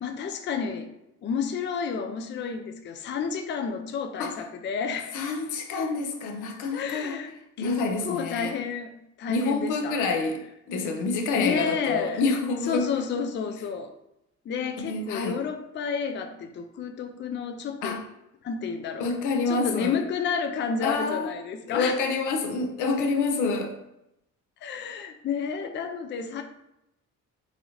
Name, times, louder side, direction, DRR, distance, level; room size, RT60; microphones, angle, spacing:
voice 1, 0.0-0.9 1.2-5.2 6.7-7.8 8.0-8.9 9.2-10.0 11.3-12.3 12.6-13.9 14.5-18.0 18.4-19.1 19.5-22.0 24.6-26.4, left 6 dB, 40° left, 5 dB, 0.4 m, -31 dB
voice 2, 5.1-7.1 7.6-8.5 9.3-10.4 10.7-12.9 14.9-15.4 17.8-18.0 19.0-20.0 20.8-21.3 21.7-23.7, left 4 dB, 85° left, 3 dB, 0.6 m, -27 dB
4.0 x 2.8 x 2.8 m, 0.85 s
cardioid pair, 90°, 30 cm